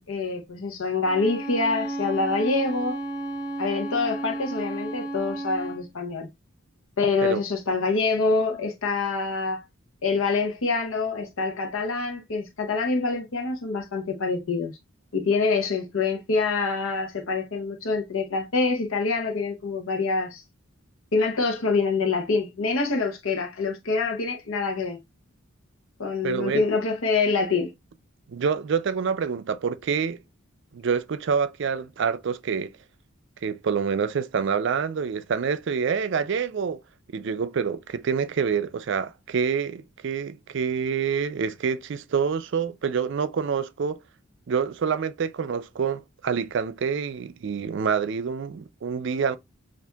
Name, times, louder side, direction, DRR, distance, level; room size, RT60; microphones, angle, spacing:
voice 1, 0.0-3.0 3.6-6.3 7.0-9.6 10.0-14.7 15.1-20.4 21.1-25.0 26.0-27.7, left 4 dB, 80° left, 0.8 m, -26 dB
Bowed string instrument, 1.0-5.9, right 2 dB, 15° left, 1.0 m, -33 dB
voice 2, 26.2-26.7 28.3-30.2 30.7-32.7 33.4-36.8 37.1-44.0 44.5-49.4, right 6 dB, 60° right, 0.4 m, -27 dB
7.0 x 2.5 x 2.3 m
head